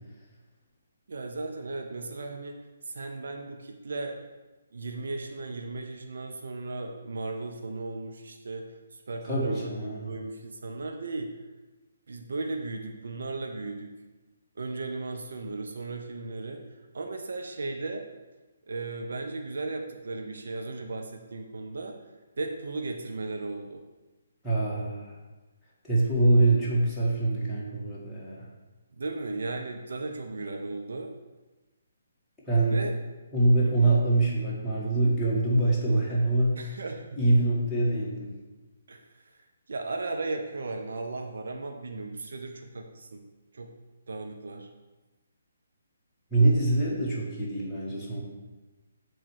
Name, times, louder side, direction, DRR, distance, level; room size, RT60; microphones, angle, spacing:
voice 1, 1.1-2.6 2.9-4.2 4.7-9.7 10.0-11.3 12.1-13.9 14.6-16.6 16.9-18.0 18.7-21.9 22.4-23.8 29.0-31.1 32.6-32.9 33.5-33.7 36.6-37.2 38.9-39.2 39.7-43.2 43.5-43.7 44.1-44.7, right 3 dB, 65° right, 3 dB, 0.8 m, -36 dB
voice 2, 9.2-10.1 24.4-25.2 25.8-28.5 32.5-32.8 33.3-36.7 37.1-38.3 46.3-48.2, right 2 dB, ahead, -10 dB, 1.8 m, -24 dB
7.4 x 3.3 x 6.2 m, 1.2 s
figure-of-eight pair, 140°, 0 cm